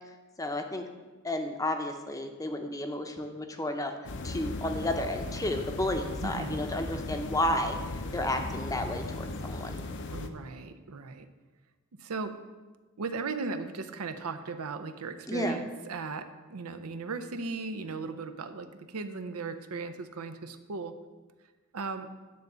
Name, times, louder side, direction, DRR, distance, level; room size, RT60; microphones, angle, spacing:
voice 1, 0.4-0.9 1.2-3.9 4.2-7.8 8.1-9.7 15.3-15.6, left 1 dB, 15° left, 5 dB, 0.7 m, -32 dB
sound 1, 4.0-10.3, left 2 dB, 55° left, 0.6 m, -37 dB
voice 2, 6.2-6.6 10.1-11.3 12.0-12.3 13.0-20.9 21.7-22.1, right 4 dB, 90° right, 9 dB, 0.6 m, -37 dB
9.6 x 3.9 x 6.8 m, 1.3 s
head